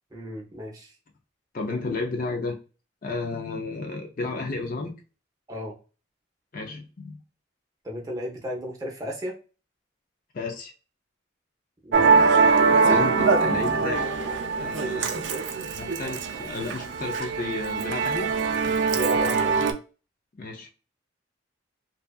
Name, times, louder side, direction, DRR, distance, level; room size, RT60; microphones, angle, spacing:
voice 1, 0.1-0.9 5.5-5.8 7.8-9.3 11.8-12.4 18.9-19.6, equal, 20° right, 0.6 m, -34 dB
voice 2, 1.5-2.6 3.0-4.9 6.5-7.2 10.3-10.7 12.8-14.1 14.6-15.3 15.8-18.3 20.4-20.7, left 3 dB, 45° left, 0.4 m, -32 dB
Musical instrument, 11.9-19.7, right 4 dB, 65° right, 0.3 m, -22 dB
2.6 x 2.3 x 2.2 m
head